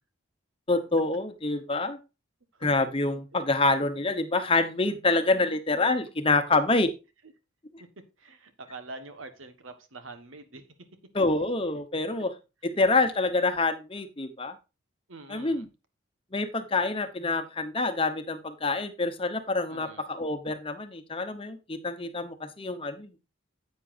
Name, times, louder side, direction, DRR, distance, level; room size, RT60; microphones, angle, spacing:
voice 1, 0.7-2.0 2.6-6.9 7.7-7.8 11.1-12.3 12.6-14.6 15.3-15.7 16.3-23.1, left 3 dB, 25° left, 0.9 m, -27 dB
voice 2, 8.2-10.6 15.1-15.7 19.7-20.1, right 3 dB, 85° right, 1.4 m, -45 dB
10.0 x 8.3 x 2.6 m
head